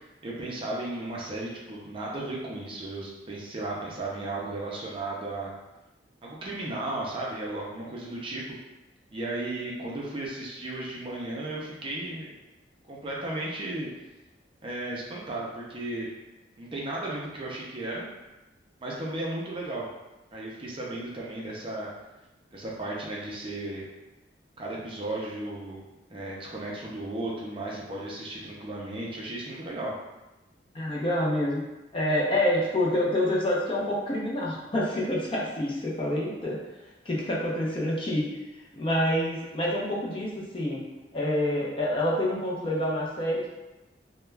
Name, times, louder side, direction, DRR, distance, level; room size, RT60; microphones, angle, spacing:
voice 1, 0.2-5.5 6.2-8.6 9.1-12.3 12.9-13.9 14.6-16.1 16.6-18.1 18.8-19.9 20.3-21.9 22.5-23.8 24.6-25.8 26.1-29.9, right 2 dB, 30° right, -4 dB, 0.4 m, -35 dB
voice 2, 30.7-31.6 31.9-36.6 37.0-38.3 38.7-40.8 41.1-43.5, left 1 dB, 30° left, -4 dB, 0.5 m, -27 dB
2.2 x 2.1 x 3.2 m, 1.0 s
head